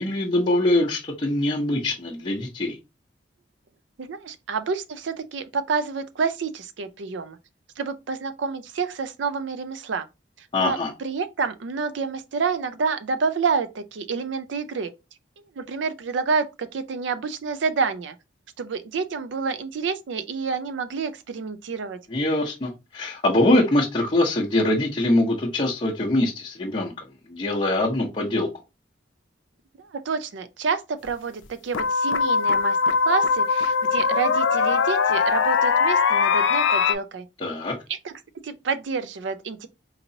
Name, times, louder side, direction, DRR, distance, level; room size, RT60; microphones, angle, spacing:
voice 1, 0.0-2.7 10.5-10.9 22.1-26.9 27.3-28.5 37.4-37.7, left 1 dB, 30° left, 0.7 m, -23 dB
voice 2, 4.0-7.4 7.8-10.1 10.6-14.9 15.6-18.1 18.6-22.0 29.8-37.2 37.9-38.1 38.4-39.7, right 5 dB, 80° right, 0.4 m, -28 dB
sound 1, 31.1-31.2 31.7-36.9, left 5 dB, 90° left, 0.5 m, -21 dB
3.9 x 2.9 x 2.7 m
head